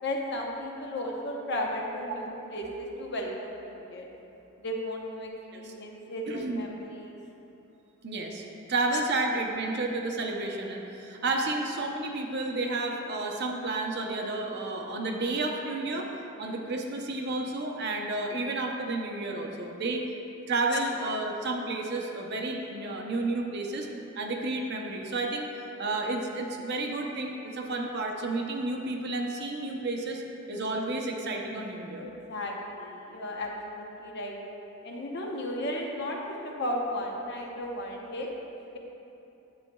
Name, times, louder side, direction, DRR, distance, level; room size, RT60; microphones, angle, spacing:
voice 1, 0.0-4.1 4.6-7.2 20.7-20.8 22.8-23.0 32.0-34.4 34.8-38.3 38.7-38.8, left 1 dB, 50° left, 0 dB, 0.8 m, -35 dB
voice 2, 6.3-6.6 8.0-8.4 8.7-16.1 16.4-20.0 20.5-23.9 24.2-25.5 25.8-30.2 30.5-32.1, right 2 dB, 50° right, 1 dB, 0.7 m, -31 dB
10.0 x 8.0 x 2.3 m, 2.9 s
head